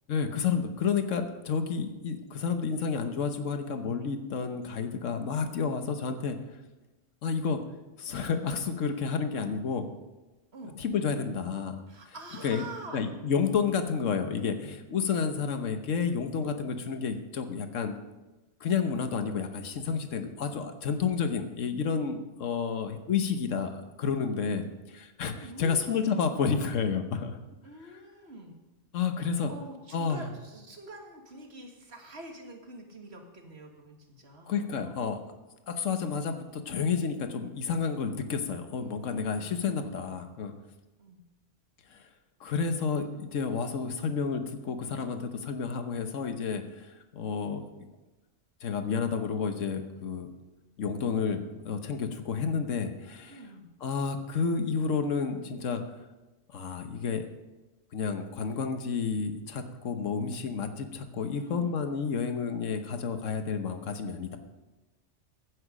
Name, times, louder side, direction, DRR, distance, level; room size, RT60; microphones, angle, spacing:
voice 1, 0.1-6.4 7.2-7.6 8.0-9.9 10.8-11.8 12.4-12.6 12.9-17.9 18.6-27.4 28.9-29.5 29.9-30.3 34.5-35.2 35.7-40.5 41.9-42.0 42.4-47.9 48.6-50.3 50.8-53.4 53.8-55.8 56.5-57.3 57.9-64.4, left 6 dB, 85° left, 8 dB, 1.4 m, -30 dB
voice 2, 11.9-13.0 25.4-26.4 27.6-28.6 29.5-34.6 38.8-39.5 41.0-41.2 53.3-53.7 61.4-61.8, right 1 dB, 60° right, 3 dB, 1.9 m, -46 dB
15.0 x 9.5 x 5.0 m, 1.1 s
omnidirectional pair, 1.3 m